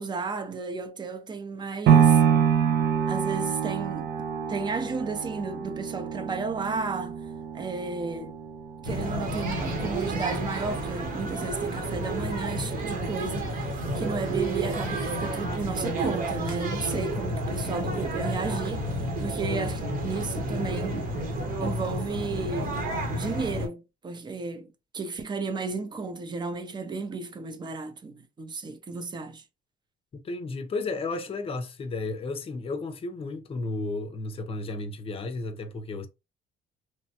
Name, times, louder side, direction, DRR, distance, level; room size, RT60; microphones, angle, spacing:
voice 1, 0.0-2.2 3.1-4.1 4.5-7.2 7.5-8.3 8.8-18.8 19.2-21.1 21.6-29.4, right 4 dB, 25° right, 0.6 m, -33 dB
sound 1, 1.9-10.0 10.4-10.5, right 8 dB, 70° right, 0.5 m, -26 dB
sound 2, 8.8-23.7, right 1 dB, 55° right, 1.0 m, -30 dB
voice 2, 30.2-36.1, left 3 dB, 35° left, 0.6 m, -33 dB
3.1 x 2.2 x 2.8 m
cardioid pair, 110°, 17 cm